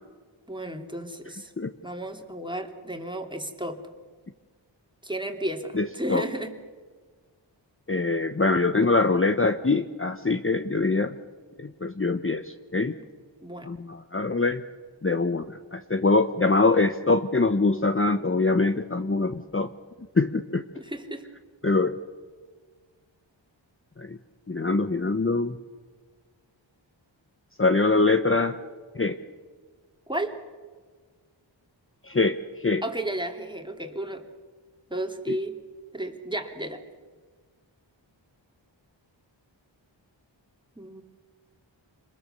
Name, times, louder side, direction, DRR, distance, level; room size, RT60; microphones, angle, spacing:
voice 1, 0.5-1.5 1.8-3.8 5.0-6.5 13.0-13.1 13.4-13.7 20.7-21.2 30.1-30.4 32.8-34.2 34.9-35.6 35.9-36.8 40.8-41.0, right 1 dB, 10° right, 3 dB, 3.1 m, -33 dB
voice 2, 5.7-6.2 7.9-11.1 11.6-12.9 13.6-14.6 15.0-19.7 20.1-20.6 21.6-22.0 24.0-24.2 24.5-25.6 27.6-28.6 28.9-29.2 32.0-32.8 35.3-35.4, left 3 dB, 25° left, 8 dB, 1.1 m, -24 dB
27.0 x 21.0 x 6.9 m, 1.5 s
cardioid pair, 45°, 47 cm